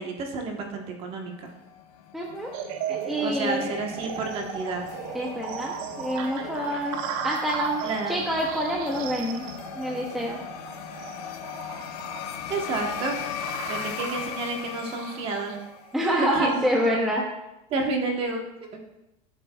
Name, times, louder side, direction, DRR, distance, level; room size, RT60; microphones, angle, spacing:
voice 1, 0.0-1.5 3.2-4.8 7.8-8.2 12.5-13.2 13.7-15.6 16.2-16.6 17.7-18.8, right 3 dB, 30° right, 2 dB, 1.2 m, -30 dB
sound 1, 1.3-16.0, left 8 dB, 75° left, 1.0 m, -38 dB
voice 2, 2.1-2.5 2.9-3.7 5.1-7.0 7.2-9.5 9.7-10.4 15.9-17.2, equal, ahead, -2 dB, 0.6 m, -27 dB
sound 2, 2.5-16.8, right 8 dB, 55° right, 0.7 m, -37 dB
15.5 x 7.5 x 2.3 m, 0.92 s
supercardioid pair, 175°, 20 cm